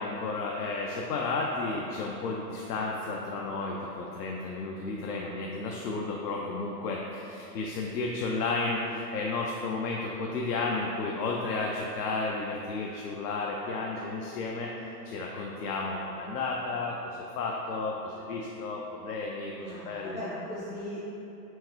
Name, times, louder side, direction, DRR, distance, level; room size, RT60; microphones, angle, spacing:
voice 1, 0.0-14.7 15.0-20.2, left 3 dB, 70° left, -1 dB, 0.6 m, -32 dB
voice 2, 19.6-21.1, left 1 dB, 10° left, -13 dB, 0.3 m, -38 dB
4.5 x 3.2 x 3.0 m, 2.9 s
hypercardioid pair, 125°, 50 cm